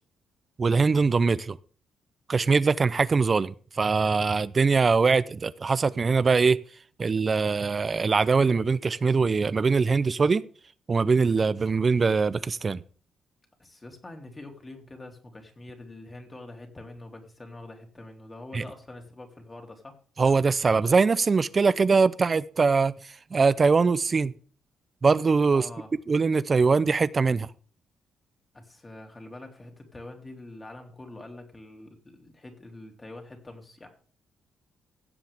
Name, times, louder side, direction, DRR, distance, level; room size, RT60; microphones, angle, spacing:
voice 1, 0.6-1.6 2.3-6.6 7.0-10.4 10.9-12.8 18.5-18.6 20.2-24.3 25.0-25.7 26.1-27.5, right 4 dB, 35° right, 0.6 m, -22 dB
voice 2, 13.6-19.9 25.5-25.9 28.5-33.9, left 2 dB, 20° left, 2.9 m, -45 dB
16.0 x 7.4 x 3.6 m
cardioid pair, 90°, 0 cm